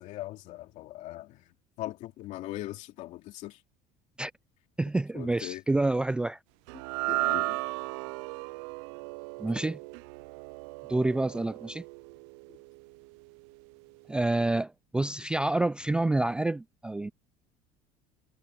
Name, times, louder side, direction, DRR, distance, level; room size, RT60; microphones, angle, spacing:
voice 1, 0.0-3.6 5.1-5.6 7.1-7.6, left 15 dB, 60° left, 2.9 m, -40 dB
voice 2, 4.8-6.4 9.4-9.8 10.9-11.8 14.1-17.1, right 2 dB, 5° right, 0.3 m, -28 dB
sound 1, 6.7-13.1, right 25 dB, 85° right, 0.4 m, -35 dB
cardioid pair, 145°, 14 cm